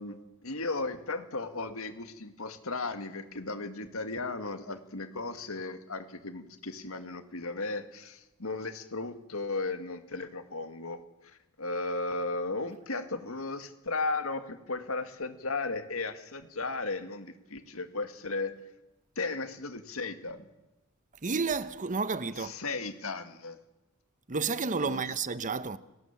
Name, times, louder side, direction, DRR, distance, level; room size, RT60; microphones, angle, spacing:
voice 1, 0.0-18.5 19.2-20.5 22.4-23.6 24.8-25.0, left 3 dB, 75° left, 2.1 m, -35 dB
voice 2, 21.2-22.5 24.3-25.8, right 4 dB, 35° right, 0.9 m, -31 dB
30.0 x 19.0 x 7.4 m
head